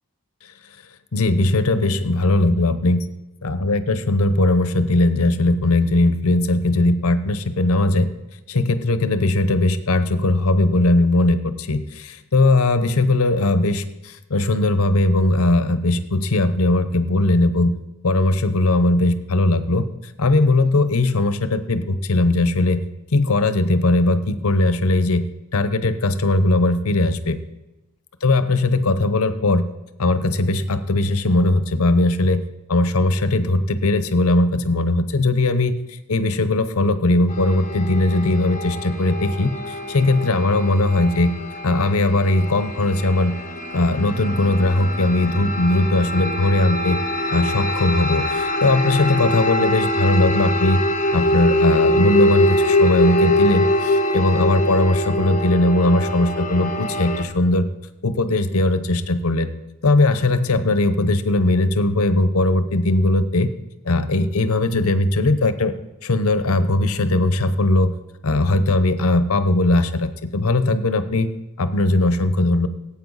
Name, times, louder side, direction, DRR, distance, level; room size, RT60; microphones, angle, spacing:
voice 1, 1.1-3.1 3.4-8.1 8.5-17.7 18.0-19.9 20.2-22.8 23.1-25.2 25.5-27.4 28.2-29.6 30.0-32.4 32.7-41.3 41.6-43.3 43.7-47.0 47.3-50.8 51.1-57.7 58.0-59.5 59.8-63.5 63.8-65.7 66.0-67.9 68.2-71.3 71.6-72.7, left 2 dB, 75° left, 11 dB, 0.8 m, -19 dB
sound 1, 37.3-57.2, left 1 dB, 35° left, 0.8 m, -23 dB
16.5 x 8.6 x 4.1 m, 0.99 s
head